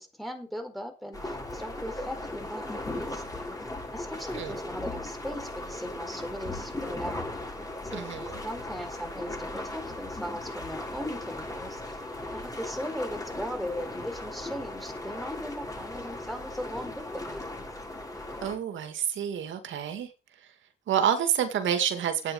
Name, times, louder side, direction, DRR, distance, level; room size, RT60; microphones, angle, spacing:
voice 1, 0.0-3.6 3.9-7.2 7.8-8.1 8.4-12.0 12.3-17.6, equal, ahead, 4.5 m, -38 dB
sound 1, 1.1-18.6, left 2 dB, 15° left, 7.4 m, -37 dB
voice 2, 7.9-8.3 18.4-20.1 20.9-22.3, right 9 dB, 75° right, 2.2 m, -28 dB
12.0 x 9.0 x 5.4 m
cardioid pair, 90°, 20 cm